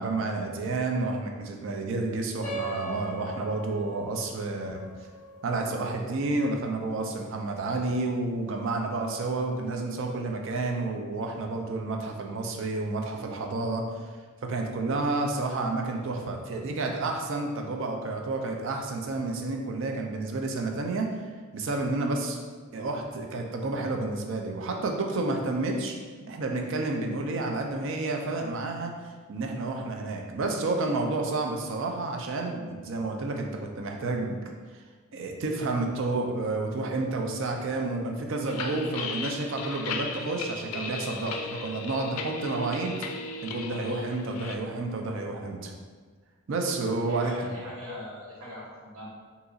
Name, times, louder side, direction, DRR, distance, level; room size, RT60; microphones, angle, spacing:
voice 1, 0.0-4.8 5.4-13.8 14.5-21.1 21.5-22.4 22.7-26.0 26.3-34.4 35.1-43.1 43.4-45.7 46.5-47.5, right 2 dB, 60° right, 2 dB, 0.4 m, -30 dB
sound 1, 2.4-7.4, right 2 dB, 15° left, 0.6 m, -40 dB
sound 2, 38.5-44.6, left 3 dB, 80° left, 0.4 m, -36 dB
voice 2, 47.0-49.0, left 1 dB, 80° right, -6 dB, 1.2 m, -40 dB
3.9 x 2.8 x 2.4 m, 1.5 s
head